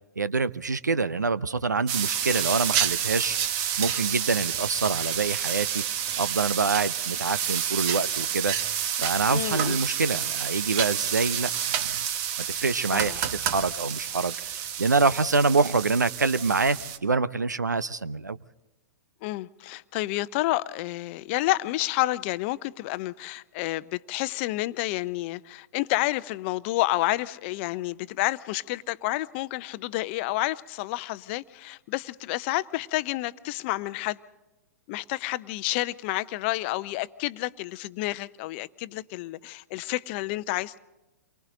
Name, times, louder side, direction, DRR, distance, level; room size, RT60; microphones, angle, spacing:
voice 1, 0.2-3.4 3.8-5.8 6.2-8.5 9.0-12.0 12.4-18.4, right 4 dB, 85° right, 0.7 m, -26 dB
sound 1, 1.9-17.0, right 9 dB, 40° right, 1.3 m, -29 dB
voice 2, 9.3-9.8 12.9-13.2 19.2-34.2 34.9-40.8, left 18 dB, 40° left, 0.7 m, -30 dB
28.5 x 23.5 x 3.9 m
figure-of-eight pair, 105°, 9 cm